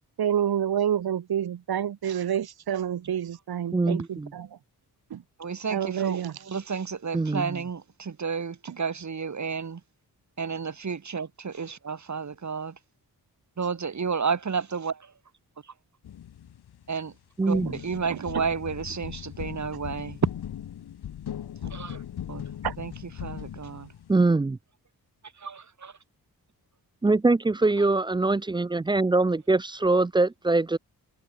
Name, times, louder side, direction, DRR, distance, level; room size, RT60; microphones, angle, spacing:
voice 1, 0.2-4.6 5.1-5.2 5.7-6.4 8.7-8.8 17.6-17.7 18.1-18.5 22.6-22.7, right 9 dB, 75° right, 1.2 m, -28 dB
voice 2, 3.7-4.3 7.1-7.6 17.4-17.8 24.1-24.6 27.0-30.8, right 3 dB, 15° right, 0.3 m, -23 dB
voice 3, 5.4-6.2 6.5-9.8 10.4-12.7 13.6-15.1 16.9-17.1 17.5-20.2 21.6-22.0 22.3-22.4 22.8-22.9 23.2-23.9 25.4-25.9, right 5 dB, 45° right, 2.2 m, -31 dB
sound 1, 16.0-17.1 17.5-24.3, left 10 dB, 90° left, 1.4 m, -39 dB
cardioid pair, 85°, 38 cm